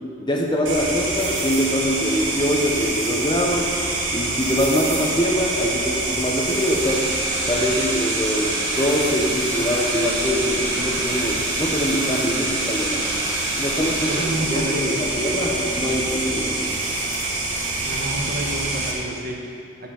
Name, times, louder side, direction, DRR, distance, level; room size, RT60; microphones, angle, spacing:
voice 1, 0.2-3.7 4.1-7.1 7.5-13.0 13.6-14.1 14.5-16.7, equal, 20° left, 0 dB, 0.8 m, -23 dB
sound 1, 0.7-18.9, right 2 dB, 65° right, 1.5 m, -26 dB
sound 2, 6.8-14.2, right 1 dB, 20° right, 1.8 m, -32 dB
voice 2, 13.9-15.0 17.8-19.9, right 1 dB, 50° right, 0 dB, 1.1 m, -30 dB
7.9 x 5.6 x 6.9 m, 2.4 s
head